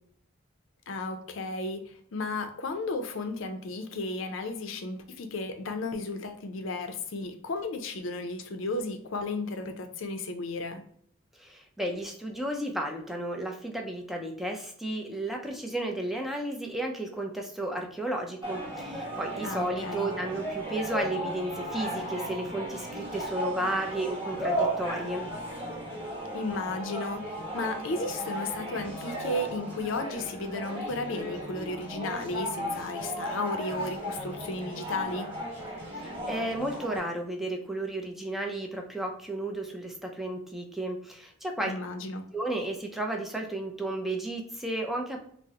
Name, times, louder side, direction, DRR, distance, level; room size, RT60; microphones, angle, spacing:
voice 1, 0.9-10.8 19.4-20.1 26.3-35.3 41.6-42.2, left 2 dB, 70° left, 7 dB, 0.5 m, -34 dB
voice 2, 11.4-25.3 35.9-41.7 42.3-45.3, right 1 dB, ahead, 1 dB, 0.4 m, -33 dB
sound 1, 18.4-37.0, right 1 dB, 25° right, 1.1 m, -35 dB
3.6 x 2.0 x 2.7 m, 0.63 s
head